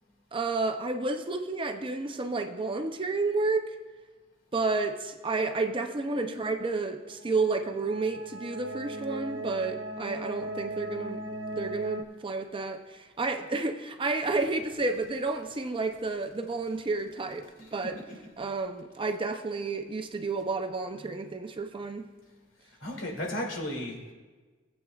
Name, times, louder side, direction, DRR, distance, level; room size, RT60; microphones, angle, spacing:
voice 1, 0.3-3.8 4.5-11.2 11.5-18.0 18.4-22.1, right 3 dB, 25° right, 6 dB, 0.5 m, -31 dB
sound 1, 6.1-12.0, right 1 dB, 70° right, 0.9 m, -39 dB
voice 2, 22.8-24.1, left 1 dB, 80° left, 0 dB, 2.4 m, -34 dB
17.5 x 8.0 x 2.4 m, 1.3 s
head